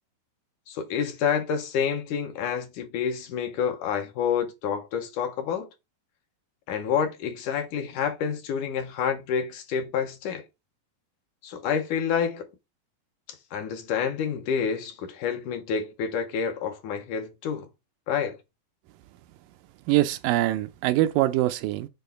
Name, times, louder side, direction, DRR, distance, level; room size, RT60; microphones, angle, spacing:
voice 1, 0.7-5.7 6.7-10.4 11.4-12.5 13.3-17.7 18.1-18.4, left 7 dB, 70° left, 2.2 m, -28 dB
voice 2, 19.9-21.9, right 15 dB, 80° right, 2.1 m, -23 dB
7.1 x 3.6 x 5.6 m
omnidirectional pair, 4.0 m